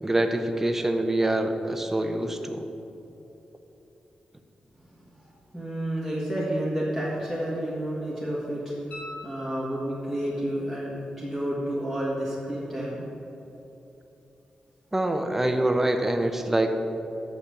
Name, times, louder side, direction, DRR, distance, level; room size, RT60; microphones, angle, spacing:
voice 1, 0.0-2.6 14.9-16.7, right 1 dB, 10° right, 6 dB, 0.6 m, -25 dB
voice 2, 4.9-13.0, right 1 dB, 5° left, -8 dB, 1.4 m, -30 dB
sound 1, 8.9-10.2 13.0-13.1, left 2 dB, 60° left, 1.7 m, -43 dB
6.5 x 5.6 x 6.9 m, 3.0 s
wide cardioid pair, 145°, 3 cm